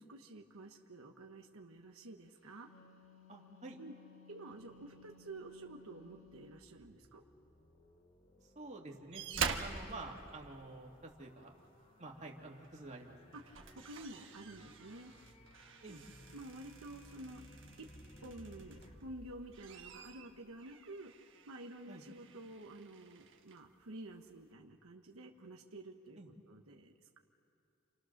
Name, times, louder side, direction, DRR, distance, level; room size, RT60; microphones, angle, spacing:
voice 1, 0.0-2.7 3.8-3.9 4.3-7.2 13.3-15.1 15.9-16.0 16.3-17.4 17.8-17.9 18.2-26.2 26.5-27.2, right 2 dB, 85° right, 2 dB, 1.3 m, -50 dB
Wind instrument woodwind instrument, 2.4-6.6, left 5 dB, 70° left, 1.7 m, -61 dB
voice 2, 3.3-3.8 8.6-9.2 9.6-11.5 12.0-13.2 15.8-16.0 21.9-22.0 26.2-26.3, right 2 dB, 35° right, -1 dB, 2.3 m, -49 dB
sound 1, 4.5-20.7, left 1 dB, 30° left, 1.2 m, -61 dB
sound 2, 9.1-11.1 12.6-12.8 13.3-19.0 19.4-23.6 24.5-24.6, right 6 dB, 60° right, 1.4 m, -46 dB
29.5 x 26.0 x 6.7 m, 2.7 s
head